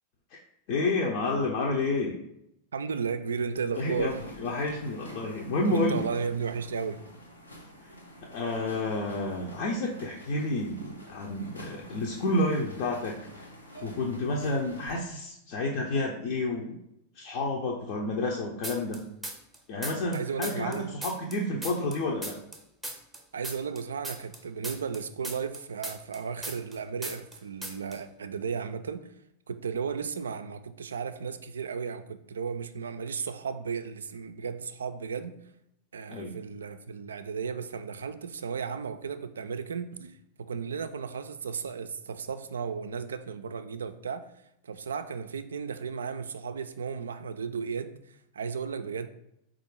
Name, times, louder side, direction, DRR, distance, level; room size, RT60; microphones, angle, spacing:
voice 1, 0.7-2.2 3.8-6.1 8.3-13.5 13.8-16.8 17.2-19.0 19.7-22.4 36.1-36.4, left 2 dB, 45° left, -1 dB, 0.6 m, -30 dB
voice 2, 2.7-4.2 5.7-7.0 20.1-20.9 23.3-29.1 29.5-35.4 35.9-44.3 44.6-49.1, right 6 dB, 70° right, 10 dB, 0.3 m, -34 dB
sound 1, 3.7-15.0, equal, 85° left, 0.9 m, -48 dB
sound 2, 18.6-19.6 19.8-22.6 22.8-26.8 27.0-27.4 27.6-28.0, right 1 dB, 5° right, 0.6 m, -38 dB
4.3 x 2.4 x 4.7 m, 0.79 s
figure-of-eight pair, 90°, 0 cm